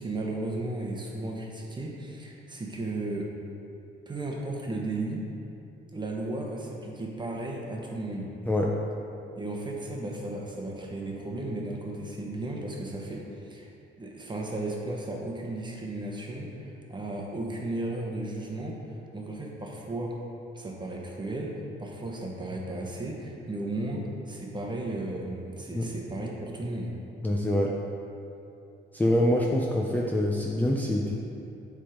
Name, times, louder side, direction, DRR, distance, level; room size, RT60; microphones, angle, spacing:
voice 1, 0.0-3.3 4.1-5.3 5.9-8.4 9.4-13.7 14.0-18.8 19.1-20.2 20.5-26.9, right 2 dB, 25° right, -1 dB, 1.1 m, -35 dB
voice 2, 8.5-8.8 25.7-25.9 27.2-27.8 28.9-31.2, left 1 dB, 10° left, -2 dB, 0.5 m, -25 dB
7.4 x 3.7 x 5.1 m, 2.7 s
cardioid pair, 90°, 20 cm